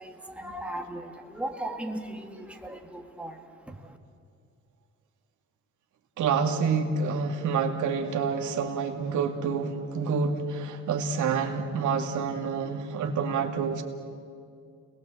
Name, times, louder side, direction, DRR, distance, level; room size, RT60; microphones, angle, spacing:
voice 1, 0.0-4.0, right 1 dB, 5° right, 2.2 m, -37 dB
voice 2, 6.2-13.8, right 5 dB, 75° right, 2.5 m, -28 dB
29.5 x 21.0 x 7.9 m
cardioid pair, 90°, 30 cm